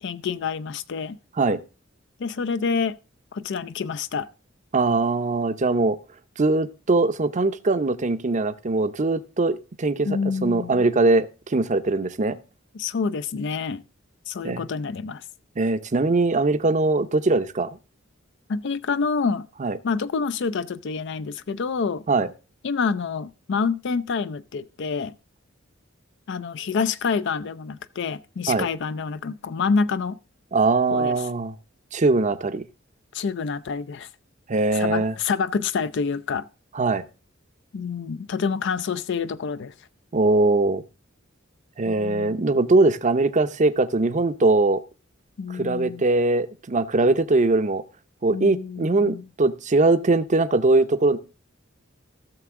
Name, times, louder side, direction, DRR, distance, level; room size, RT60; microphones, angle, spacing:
voice 1, 0.0-1.2 2.2-3.0 3.3-4.3 10.0-10.8 12.7-13.8 14.3-15.2 18.5-19.5 19.8-22.0 22.6-25.1 26.3-30.2 30.9-31.2 33.1-34.1 34.7-36.5 37.7-39.7 41.9-42.5 45.4-46.0 48.3-49.2, left 5 dB, 65° left, 0.4 m, -27 dB
voice 2, 4.7-6.0 6.4-12.4 14.4-14.6 15.6-17.7 19.6-19.8 22.1-22.3 28.5-28.7 30.5-31.5 31.9-32.6 34.5-35.1 36.7-37.1 40.1-40.8 41.8-44.8 45.5-47.8 48.2-51.2, right 3 dB, 40° right, 0.6 m, -21 dB
16.0 x 6.7 x 3.6 m
head